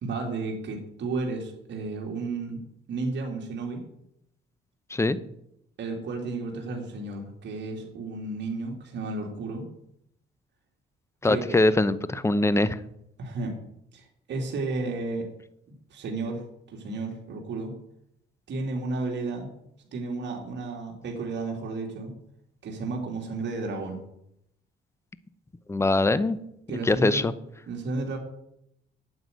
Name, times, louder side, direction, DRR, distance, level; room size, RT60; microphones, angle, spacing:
voice 1, 0.0-2.6 2.9-3.8 5.8-9.7 11.2-11.6 13.2-13.5 13.9-15.3 15.9-16.4 16.7-17.7 18.5-19.5 19.9-22.1 22.6-24.0 26.7-27.3 27.7-28.2, right 3 dB, 65° right, 1 dB, 2.7 m, -32 dB
voice 2, 11.2-12.8 25.7-26.4 26.8-27.3, left 2 dB, 15° left, 15 dB, 0.8 m, -22 dB
9.4 x 8.0 x 9.1 m, 0.77 s
cardioid pair, 90°, 20 cm